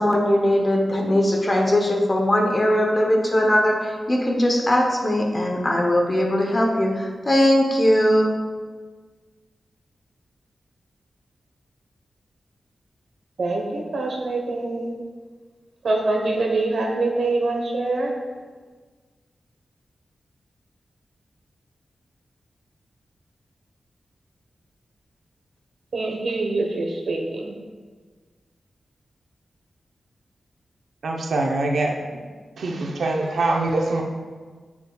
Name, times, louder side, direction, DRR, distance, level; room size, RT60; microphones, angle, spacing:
voice 1, 0.0-8.3, left 1 dB, 25° left, 1 dB, 0.8 m, -20 dB
voice 2, 13.4-14.9 15.8-18.1 25.9-27.6, right 2 dB, 65° right, 1 dB, 1.1 m, -24 dB
voice 3, 31.0-31.9 32.6-34.0, right 2 dB, 85° right, 1 dB, 0.7 m, -23 dB
6.9 x 6.8 x 2.3 m, 1.4 s
wide cardioid pair, 160°, 0 cm